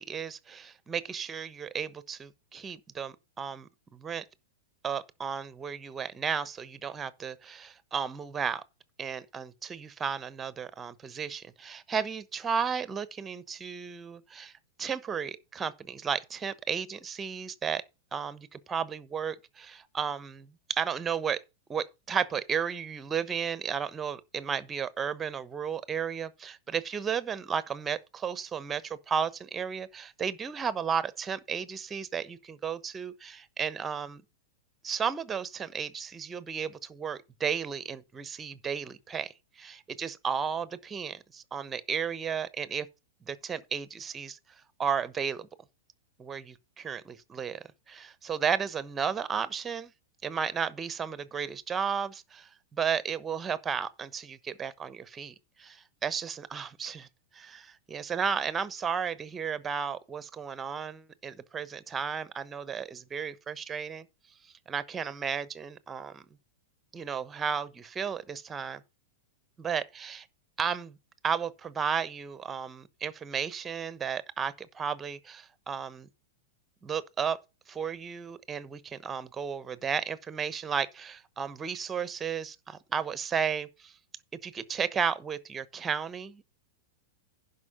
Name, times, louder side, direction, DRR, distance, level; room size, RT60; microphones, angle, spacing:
voice 1, 0.0-4.2 4.8-8.6 9.0-14.5 14.8-17.8 18.1-21.4 21.7-34.2 34.8-42.9 43.3-44.4 44.8-45.5 46.2-49.9 50.2-57.1 57.3-64.0 64.7-66.2 66.9-68.8 69.6-70.3 70.6-71.0 71.2-76.1 76.8-77.4 77.7-83.9 84.4-86.5, right 7 dB, 20° right, 1.0 m, -33 dB
11.0 x 5.5 x 5.5 m
hypercardioid pair, 100°, 0 cm